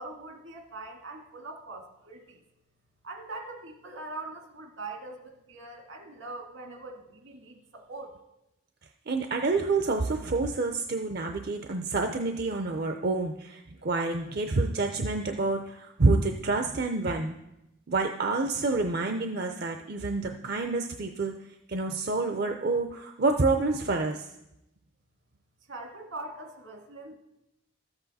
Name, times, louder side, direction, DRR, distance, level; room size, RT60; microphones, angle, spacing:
voice 1, 0.0-2.4 3.0-8.2 25.7-27.1, right 2 dB, 80° right, 3 dB, 1.8 m, -42 dB
voice 2, 9.1-17.3 17.9-21.3 21.7-24.3, right 3 dB, 50° right, 5 dB, 0.5 m, -28 dB
13.5 x 8.0 x 4.1 m, 0.89 s
head